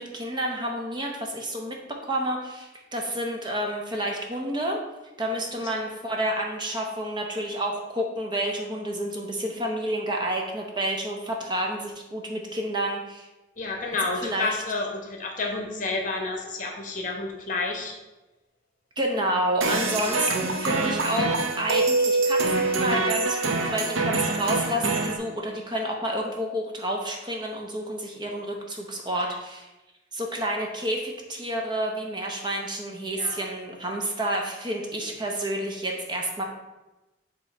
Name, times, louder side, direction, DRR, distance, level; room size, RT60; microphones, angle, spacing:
voice 1, 0.0-4.8 5.2-13.3 14.2-14.6 19.0-29.7 30.1-36.4, right 1 dB, 25° right, 1 dB, 0.7 m, -29 dB
voice 2, 13.6-17.9 19.7-20.0 33.1-33.4, left 3 dB, 40° left, 1 dB, 1.0 m, -30 dB
sound 1, 19.6-25.2, right 3 dB, 85° right, 0.7 m, -25 dB
8.0 x 3.0 x 4.5 m, 1.0 s
head